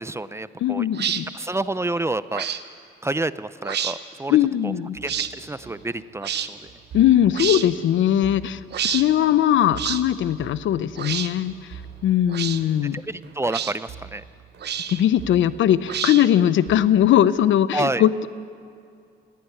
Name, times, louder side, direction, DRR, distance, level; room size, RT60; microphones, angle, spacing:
voice 1, 0.0-0.9 1.3-2.5 3.0-4.4 4.6-4.7 5.0-6.7 12.9-14.2 17.7-18.1, right 2 dB, 15° right, 15 dB, 0.5 m, -28 dB
voice 2, 0.6-1.3 4.3-5.0 6.9-11.5 12.0-13.0 14.9-18.3, left 11 dB, 75° left, 15 dB, 0.7 m, -20 dB
sound 1, 0.9-1.2 2.3-2.6 3.6-4.0 5.1-5.3 6.2-6.5 7.3-7.7 8.7-9.0 9.8-10.0 11.0-11.3 12.3-12.6 13.5-13.7 14.6-15.0 15.9-16.4, right 9 dB, 60° right, 1.0 m, -28 dB
sound 2, 4.9-16.8, right 8 dB, 75° right, 4.2 m, -45 dB
19.5 x 16.5 x 9.5 m, 2.4 s
cardioid pair, 90°, 20 cm